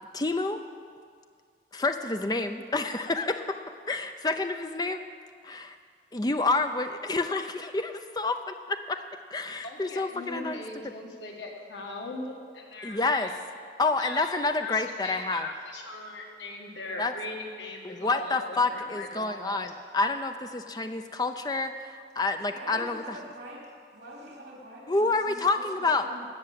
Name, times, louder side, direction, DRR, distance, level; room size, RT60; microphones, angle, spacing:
voice 1, 0.1-0.6 1.7-3.6 3.9-5.0 5.4-5.8 6.1-9.0 9.3-10.6 12.8-13.3 13.8-15.5 17.0-17.1 17.8-23.2 24.9-26.1, left 3 dB, 20° left, 7 dB, 0.5 m, -28 dB
voice 2, 9.6-13.3 14.0-19.6, left 2 dB, 85° left, 0 dB, 1.6 m, -40 dB
voice 3, 22.5-23.6 23.9-26.2, equal, 80° right, -2 dB, 2.9 m, -45 dB
15.5 x 6.1 x 7.5 m, 2.1 s
head